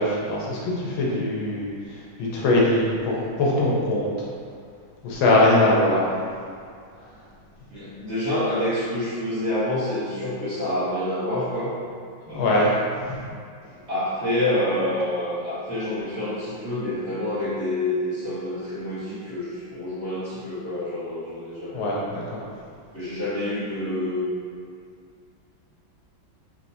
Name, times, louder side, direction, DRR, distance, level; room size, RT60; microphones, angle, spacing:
voice 1, 0.0-1.7 2.2-4.1 5.0-6.0 12.3-13.2 21.7-22.4, left 1 dB, 80° left, -5 dB, 1.6 m, -21 dB
voice 2, 7.7-11.7 12.3-12.4 13.9-21.9 22.9-24.4, left 1 dB, 35° right, -14 dB, 1.6 m, -27 dB
4.5 x 3.4 x 2.7 m, 2.2 s
omnidirectional pair, 2.2 m